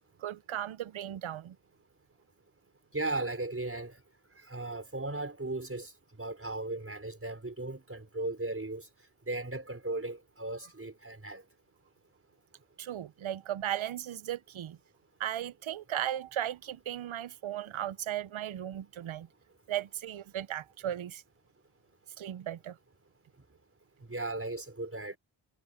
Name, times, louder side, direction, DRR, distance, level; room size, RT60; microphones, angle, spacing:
voice 1, 0.2-1.6 12.8-14.8 15.2-19.3 19.7-21.2 22.2-22.8, right 11 dB, 80° right, 0.8 m, -36 dB
voice 2, 2.9-4.0 4.5-8.9 9.3-11.4 24.1-25.2, right 2 dB, 30° right, 4.8 m, -36 dB
cardioid pair, 45°, 47 cm